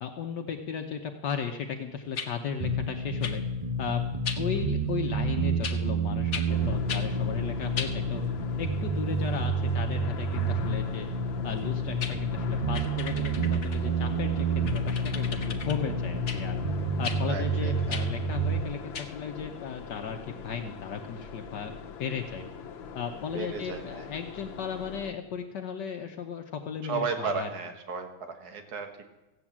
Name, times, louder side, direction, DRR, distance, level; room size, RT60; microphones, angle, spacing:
voice 1, 0.0-3.4 3.8-8.2 8.6-11.1 11.4-16.6 17.0-22.5 22.9-27.5, left 7 dB, 65° left, 4 dB, 1.5 m, -35 dB
sound 1, 2.1-2.3 3.2-3.4 4.2-4.4 5.6-5.8 6.3-6.5 6.9-7.1 7.7-8.0 11.6-11.7 12.0-12.2 12.7-13.8 14.6-15.8 16.3-16.4 17.0-17.2 17.9-18.1 18.9-19.1, left 5 dB, 45° left, 1.1 m, -36 dB
sound 2, 2.6-18.6, right 2 dB, 25° right, 0.9 m, -29 dB
sound 3, 6.5-25.1, left 6 dB, 85° left, 1.7 m, -42 dB
voice 2, 17.3-18.0 23.3-24.1 26.8-29.0, right 5 dB, 55° right, 6 dB, 1.9 m, -34 dB
15.5 x 9.0 x 7.3 m, 1.1 s
omnidirectional pair, 2.1 m